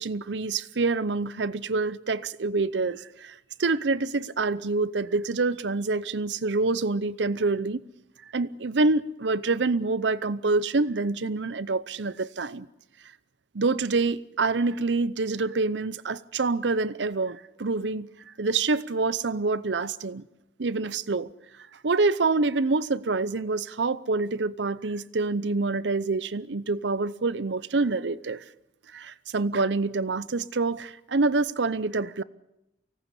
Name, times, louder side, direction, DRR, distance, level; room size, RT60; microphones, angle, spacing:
voice 1, 0.0-7.8 8.3-12.7 13.5-18.1 18.4-20.2 20.6-21.3 21.8-28.4 28.9-32.2, right 3 dB, 85° right, 0.8 m, -26 dB
24.5 x 17.5 x 8.3 m
head